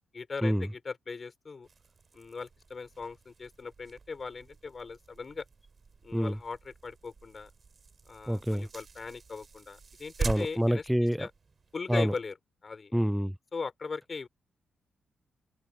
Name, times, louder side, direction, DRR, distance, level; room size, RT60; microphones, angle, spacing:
voice 1, 0.1-1.7 2.1-5.4 6.0-7.5 8.1-10.8 11.2-11.3 11.7-12.3 12.6-13.0 13.5-14.3, left 4 dB, 45° left, 5.9 m, -39 dB
sound 1, 1.6-11.8, right 5 dB, 45° right, 4.9 m, -44 dB
voice 2, 8.3-8.7 10.2-11.3 11.9-12.1 12.9-13.4, equal, ahead, 0.3 m, -27 dB
hypercardioid pair, 40°, 0 cm